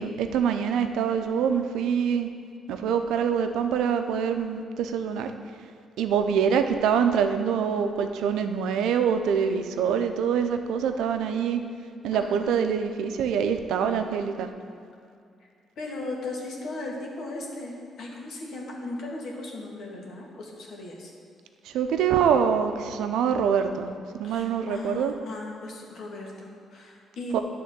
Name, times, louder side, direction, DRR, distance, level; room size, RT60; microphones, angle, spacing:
voice 1, 0.0-2.3 2.7-5.3 6.0-11.6 12.0-14.5 21.7-25.1 27.3-27.4, right 7 dB, 85° right, 7 dB, 0.5 m, -25 dB
voice 2, 12.1-12.6 15.8-21.1 24.2-27.4, left 2 dB, 65° left, -2 dB, 1.7 m, -37 dB
10.0 x 3.7 x 6.8 m, 2.4 s
cardioid pair, 90°, 0 cm